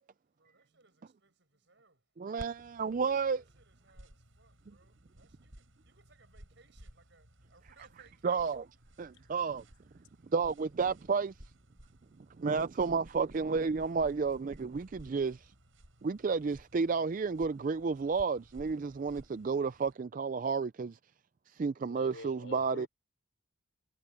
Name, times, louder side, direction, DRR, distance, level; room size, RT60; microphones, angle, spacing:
voice 1, 0.3-2.1 3.3-8.7, right 3 dB, 60° right, 7.7 m, -66 dB
voice 2, 2.2-3.4 8.2-8.6 9.0-9.6 10.3-11.3 12.4-15.5 16.0-21.0 21.5-22.9, right 5 dB, 40° right, 0.3 m, -31 dB
sound 1, 2.4-19.9, right 1 dB, 75° right, 5.1 m, -56 dB
voice 3, 21.8-22.9, left 2 dB, 75° left, 5.6 m, -47 dB
head